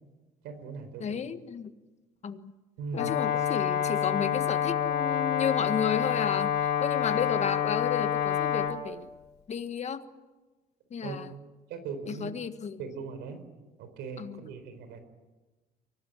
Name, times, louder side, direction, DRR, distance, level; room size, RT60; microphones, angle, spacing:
voice 1, 0.4-1.2 2.8-3.1 11.0-11.2 11.7-12.3 12.8-13.4 13.8-15.0, right 5 dB, 90° right, 10 dB, 4.3 m, -39 dB
voice 2, 1.0-1.7 2.2-2.5 3.0-6.5 6.8-9.1 9.5-10.0 10.9-11.3 12.1-12.8 14.2-14.4, left 7 dB, 40° left, 10 dB, 1.6 m, -32 dB
Brass instrument, 2.9-8.8, left 9 dB, 70° left, 2.9 m, -28 dB
24.5 x 18.0 x 10.0 m, 1.2 s
cardioid pair, 110°, 17 cm